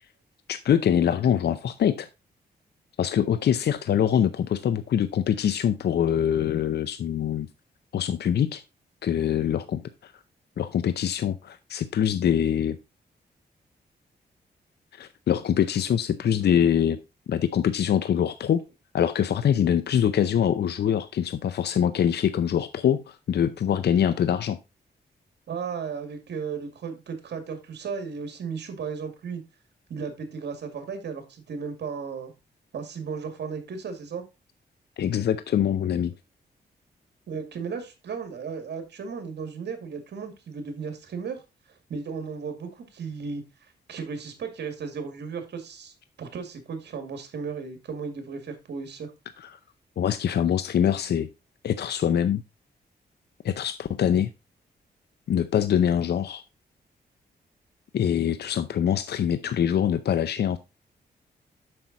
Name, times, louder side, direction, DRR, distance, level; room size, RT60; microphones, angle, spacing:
voice 1, 0.5-2.1 3.0-7.5 7.9-8.6 9.0-10.1 10.6-12.8 14.9-17.0 17.3-18.6 18.9-24.6 35.0-36.1 49.4-49.5 50.0-51.3 51.6-52.4 53.4-54.3 55.3-56.4 57.9-60.6, left 9 dB, 70° left, 12 dB, 0.6 m, -24 dB
voice 2, 25.5-29.4 29.9-32.3 32.7-34.2 37.3-41.4 41.9-49.1, right 5 dB, 75° right, 7 dB, 2.2 m, -35 dB
7.7 x 6.1 x 4.0 m, 0.26 s
cardioid pair, 85°, 18 cm